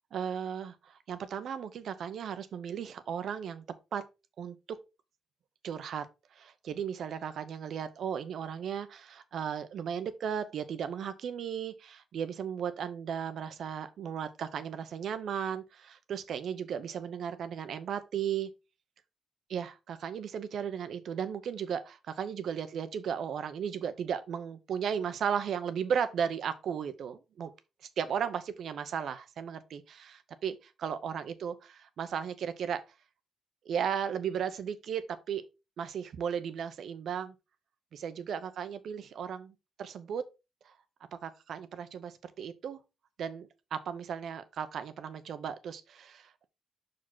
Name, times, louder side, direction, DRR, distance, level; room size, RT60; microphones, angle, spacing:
voice 1, 0.1-3.6 3.9-4.0 4.4-4.8 5.6-6.1 6.3-18.5 19.5-27.5 28.0-32.8 33.6-35.4 35.8-37.3 37.9-40.2 40.6-40.7 41.1-42.8 43.2-46.5, right 8 dB, 70° right, 0.8 m, -35 dB
5.9 x 5.1 x 3.9 m
cardioid pair, 105°, 0 cm